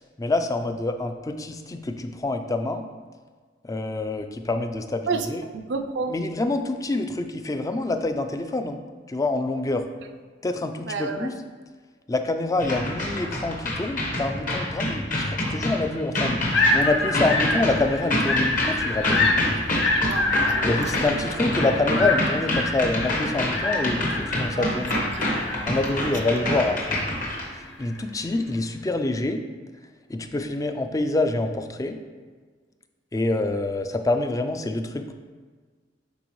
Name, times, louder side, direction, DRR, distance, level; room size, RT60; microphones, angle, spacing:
voice 1, 0.0-2.9 3.6-5.4 6.1-8.8 9.1-9.8 10.4-11.3 12.1-19.3 20.6-25.0 25.7-27.0 27.5-29.4 30.1-32.0 33.1-35.1, left 2 dB, 20° left, 7 dB, 0.4 m, -26 dB
voice 2, 5.1-6.1 10.8-11.3 20.0-20.3 20.6-21.3 24.5-25.5 25.8-26.3, right 4 dB, 70° right, 5 dB, 0.5 m, -32 dB
sound 1, 12.6-27.4, left 1 dB, 50° left, 1.2 m, -27 dB
sound 2, 16.5-28.0, left 2 dB, 80° left, 0.9 m, -27 dB
9.2 x 3.9 x 3.1 m, 1.5 s
head